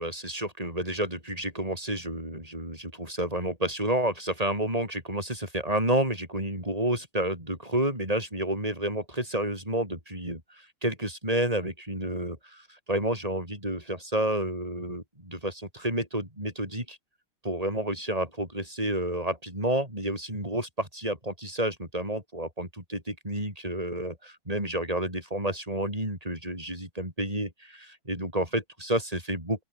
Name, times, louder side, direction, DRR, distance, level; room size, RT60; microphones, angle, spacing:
voice 1, 0.0-17.0 17.4-27.5 28.1-29.6, right 1 dB, 15° right, 8.0 m, -30 dB
open air
omnidirectional pair, 2.3 m